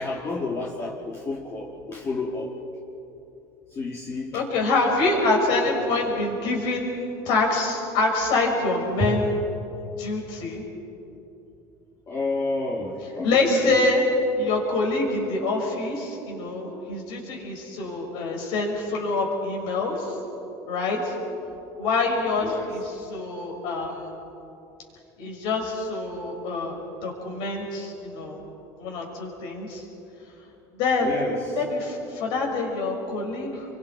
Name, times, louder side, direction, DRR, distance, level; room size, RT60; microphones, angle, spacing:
voice 1, 0.0-2.5 3.8-4.4 9.0-9.1 12.1-13.4 22.4-22.7 31.0-31.6, left 2 dB, 30° left, -3 dB, 2.3 m, -30 dB
voice 2, 4.3-7.0 7.2-9.3 10.0-10.6 13.2-14.0 14.4-20.2 20.7-21.1 21.8-24.1 25.2-28.4 28.8-29.8 30.8-31.1 31.5-33.7, left 3 dB, 65° left, 0 dB, 6.3 m, -25 dB
29.5 x 24.0 x 4.7 m, 2.9 s
cardioid pair, 135°, 9 cm